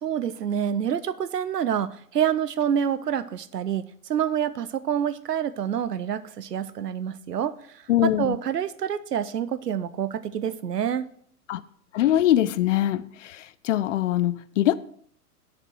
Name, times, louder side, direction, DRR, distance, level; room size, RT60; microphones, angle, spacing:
voice 1, 0.0-11.1, right 9 dB, 80° right, 0.8 m, -27 dB
voice 2, 7.9-8.4 11.5-11.6 11.9-14.8, left 13 dB, 50° left, 0.6 m, -23 dB
8.5 x 6.8 x 6.4 m
hypercardioid pair, 110°, 47 cm